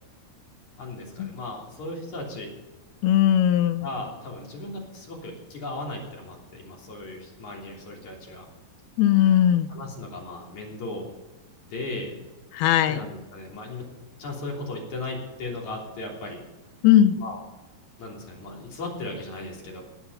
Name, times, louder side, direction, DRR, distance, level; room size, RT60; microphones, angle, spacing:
voice 1, 0.8-2.6 3.8-8.5 9.7-11.1 11.6-12.1 12.9-13.9 14.2-16.4 17.2-17.4 18.0-19.8, left 2 dB, 50° left, -1 dB, 4.4 m, -36 dB
voice 2, 3.0-3.9 9.0-9.7 12.5-13.0 16.8-17.2, left 11 dB, 80° left, 12 dB, 2.5 m, -19 dB
18.5 x 10.0 x 5.5 m, 1.1 s
omnidirectional pair, 4.7 m